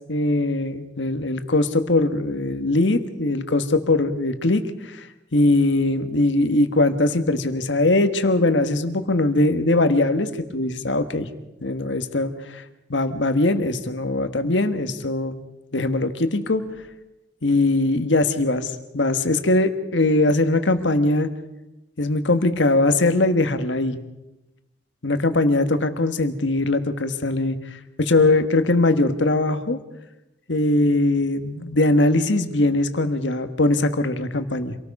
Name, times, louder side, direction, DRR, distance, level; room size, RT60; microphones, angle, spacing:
voice 1, 0.1-5.0 5.3-11.3 11.6-12.6 12.9-15.4 15.7-16.6 17.4-21.3 22.0-24.0 25.0-27.6 28.0-29.8 30.5-34.8, left 2 dB, 85° left, 9 dB, 1.5 m, -21 dB
26.5 x 18.5 x 5.4 m, 0.94 s
head